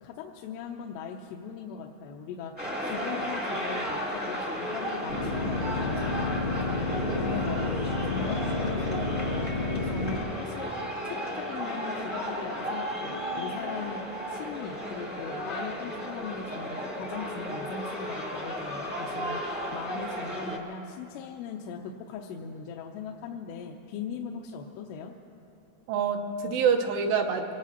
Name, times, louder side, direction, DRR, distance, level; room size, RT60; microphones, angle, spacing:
voice 1, 0.0-6.9 7.2-10.7 11.0-14.0 14.3-25.1, left 6 dB, 90° left, 0 dB, 2.8 m, -39 dB
sound 1, 2.6-20.6, equal, 10° right, 0.5 m, -34 dB
Plucked string instrument, 4.9-9.8 10.1-11.9 12.3-12.4 13.1-14.2, left 1 dB, 55° right, 0.7 m, -48 dB
sound 2, 5.1-10.2, left 3 dB, 65° left, 1.1 m, -30 dB
voice 2, 7.0-7.5 25.9-27.5, right 6 dB, 85° right, 2 dB, 3.1 m, -27 dB
25.0 x 18.5 x 2.8 m, 2.8 s
omnidirectional pair, 4.8 m